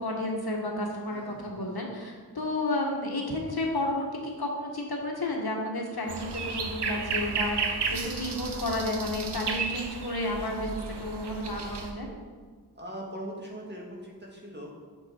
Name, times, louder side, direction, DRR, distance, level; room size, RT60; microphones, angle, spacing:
voice 1, 0.0-12.1, left 1 dB, 65° left, 0 dB, 1.5 m, -32 dB
voice 2, 1.1-1.6 12.8-14.8, equal, 25° right, -2 dB, 2.2 m, -41 dB
sound 1, 6.1-11.9, right 4 dB, 85° right, 0.9 m, -33 dB
8.0 x 6.7 x 4.5 m, 1.5 s
cardioid pair, 45°, 40 cm